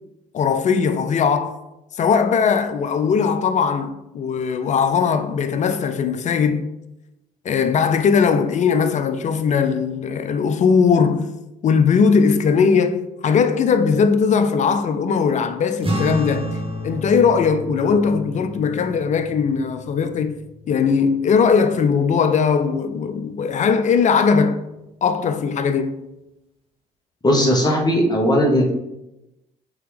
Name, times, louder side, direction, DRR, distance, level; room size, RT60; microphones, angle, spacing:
voice 1, 0.3-1.6 2.0-6.7 7.4-11.3 11.6-16.5 16.8-24.6 25.0-26.0, left 6 dB, 40° left, 0.4 m, -19 dB
sound 1, 15.8-22.5, equal, 30° right, 1.4 m, -31 dB
voice 2, 27.2-28.7, equal, 20° left, 1.1 m, -17 dB
3.5 x 2.8 x 3.4 m
hypercardioid pair, 55°, 20 cm